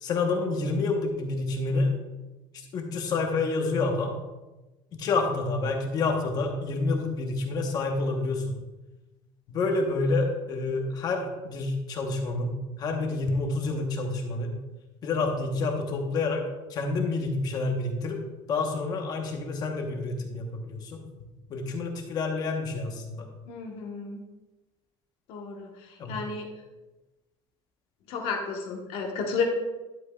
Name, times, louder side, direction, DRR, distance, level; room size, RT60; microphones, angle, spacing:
voice 1, 0.0-1.9 2.5-4.1 4.9-8.5 9.5-14.5 15.0-16.4 16.7-18.2 18.5-21.0 21.5-23.3 26.0-26.2, left 3 dB, 35° left, 3 dB, 1.1 m, -28 dB
voice 2, 23.5-24.2 25.3-25.7 26.1-26.5 28.1-29.4, left 5 dB, 55° left, 1 dB, 1.3 m, -32 dB
11.0 x 8.2 x 2.4 m, 1.1 s
cardioid pair, 175°, 12 cm